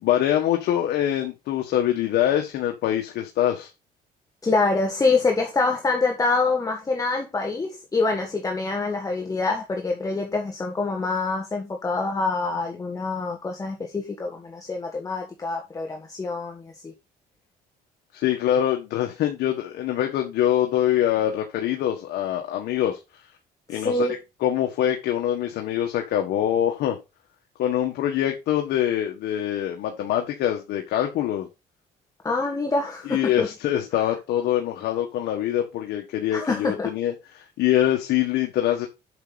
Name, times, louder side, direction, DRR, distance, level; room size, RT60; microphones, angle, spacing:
voice 1, 0.0-3.7 18.1-23.0 23.7-24.1 24.4-27.0 27.6-31.5 33.1-38.9, left 11 dB, 75° left, 1.5 m, -24 dB
voice 2, 4.4-16.9 23.7-24.2 32.2-33.5 36.3-36.9, left 3 dB, 20° left, 1.7 m, -25 dB
8.0 x 6.3 x 4.1 m
cardioid pair, 110°, 17 cm